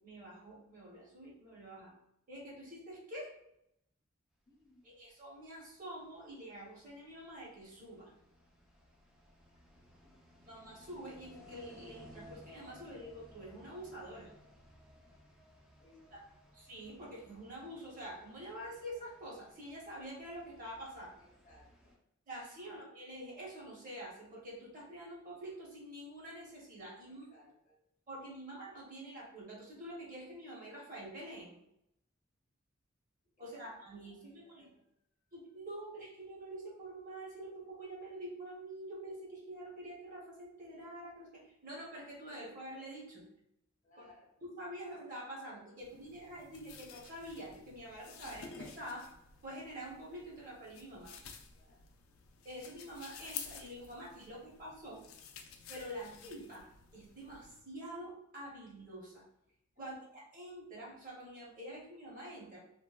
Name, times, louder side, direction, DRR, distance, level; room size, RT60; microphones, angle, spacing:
voice 1, 0.0-1.9 2.3-3.3 4.8-8.1 10.5-14.3 16.1-16.2 16.5-21.2 22.3-27.3 28.1-31.6 33.4-34.7 35.3-43.2 44.4-49.1 49.4-51.1 52.4-55.0 55.7-59.2 59.8-62.6, right 1 dB, 40° right, -4 dB, 0.8 m, -47 dB
voice 2, 4.5-4.9 9.5-10.2 15.8-16.2 21.2-22.0 27.1-27.8 33.6-33.7 34.0-34.9 35.2-35.3 43.8-44.3 51.5-51.9 59.8-59.9, left 2 dB, 40° left, -2 dB, 0.7 m, -65 dB
sound 1, 5.3-21.9, left 1 dB, 5° right, 0.3 m, -60 dB
sound 2, 45.8-57.6, left 7 dB, 80° left, 0.3 m, -52 dB
2.9 x 2.1 x 2.3 m, 0.80 s
head